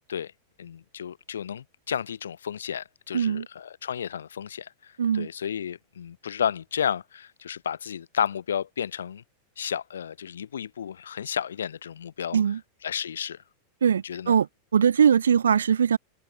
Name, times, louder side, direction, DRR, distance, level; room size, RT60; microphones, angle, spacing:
voice 1, 0.6-9.2 9.6-12.4 12.8-13.4 14.0-14.4, left 8 dB, 65° left, 0.8 m, -32 dB
voice 2, 3.1-3.5 5.0-5.3 12.3-12.6 13.8-14.5 14.7-16.0, right 7 dB, 70° right, 0.4 m, -21 dB
figure-of-eight pair, 90°, 0 cm